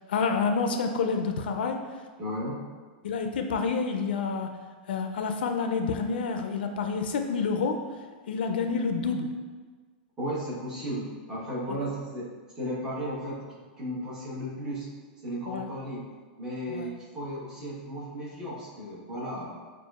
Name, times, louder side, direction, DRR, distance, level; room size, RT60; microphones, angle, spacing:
voice 1, 0.1-1.8 3.0-4.6 4.9-7.8 8.3-9.3 15.5-15.7 16.7-16.9, left 5 dB, 90° left, 5 dB, 0.4 m, -28 dB
voice 2, 2.2-2.6 10.2-14.9 15.2-16.1 16.4-19.5, equal, 10° right, -8 dB, 1.1 m, -35 dB
6.1 x 2.4 x 2.3 m, 1.4 s
supercardioid pair, 155°, 5 cm